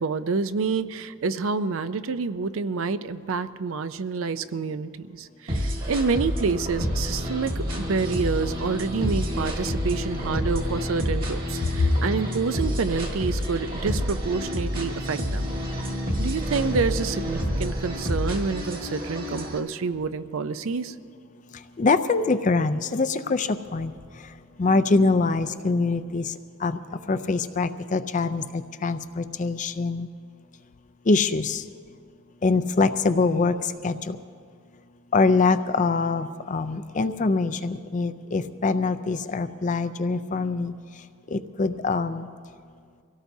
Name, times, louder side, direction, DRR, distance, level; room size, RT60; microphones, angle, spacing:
voice 1, 0.0-15.5 16.2-20.9, right 4 dB, 70° right, 13 dB, 0.5 m, -28 dB
sound 1, 5.5-19.6, equal, 40° right, 1.7 m, -29 dB
voice 2, 21.8-23.9 24.6-26.3 26.6-26.8 27.1-30.1 31.1-31.6 32.4-33.5 33.8-34.2 35.1-40.7 41.3-42.3, left 3 dB, 35° left, 12 dB, 0.4 m, -24 dB
24.5 x 17.0 x 2.7 m, 2.2 s
head